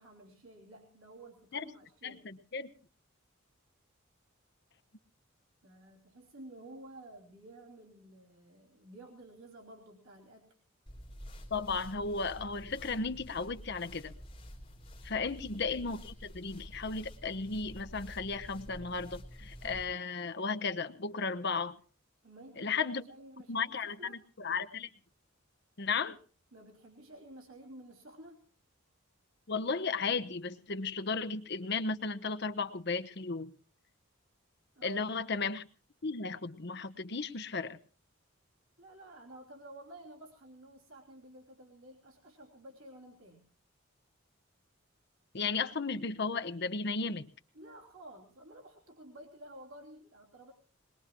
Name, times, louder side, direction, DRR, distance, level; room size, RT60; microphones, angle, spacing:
voice 1, 0.0-2.2 5.6-10.6 15.2-15.3 22.2-24.2 26.5-28.5 34.7-35.1 38.8-43.4 47.5-50.5, right 1 dB, 85° right, -1 dB, 3.1 m, -52 dB
voice 2, 2.0-2.7 11.5-14.1 15.0-21.8 22.6-23.0 23.5-24.9 25.8-26.2 29.5-33.5 34.8-35.6 36.0-37.8 45.3-47.2, left 4 dB, 50° left, 10 dB, 0.9 m, -35 dB
sound 1, 10.9-19.9, equal, 25° left, 3.4 m, -49 dB
21.5 x 21.0 x 3.0 m, 0.39 s
head